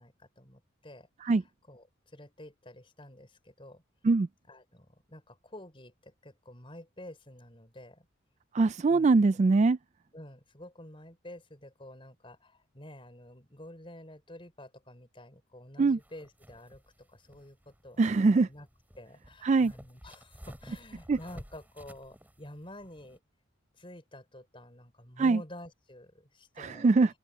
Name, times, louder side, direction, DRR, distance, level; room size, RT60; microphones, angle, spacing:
voice 1, 0.0-1.4 1.7-3.8 4.5-8.1 8.9-9.0 10.1-18.7 19.0-23.2 23.8-27.1, left 1 dB, 25° left, 5.9 m, -49 dB
voice 2, 8.5-9.8 15.8-16.0 18.0-18.5 19.4-19.7 21.1-21.2 25.2-25.4 26.6-27.2, right 3 dB, 35° right, 0.3 m, -23 dB
sound 1, 16.0-23.2, equal, 10° right, 4.9 m, -53 dB
open air
head